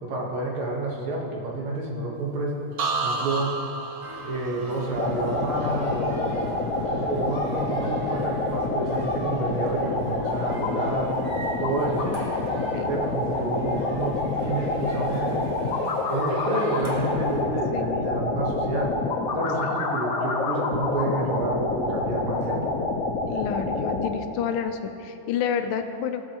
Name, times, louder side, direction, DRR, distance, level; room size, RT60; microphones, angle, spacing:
voice 1, 0.0-2.6 3.0-3.5 4.2-6.3 6.8-11.2 11.6-12.1 12.9-15.5 16.1-18.9 19.3-22.6, right 2 dB, 80° right, -2 dB, 2.2 m, -29 dB
sound 1, 2.8-6.6 7.0-7.4, right 3 dB, 60° right, 0.9 m, -32 dB
sound 2, 4.0-17.4, equal, 25° right, 1.3 m, -43 dB
sound 3, 4.9-24.1, left 3 dB, 55° left, 1.0 m, -27 dB
voice 2, 23.3-26.2, left 8 dB, 90° left, 7 dB, 1.6 m, -29 dB
16.5 x 6.3 x 2.9 m, 2.8 s
omnidirectional pair, 2.4 m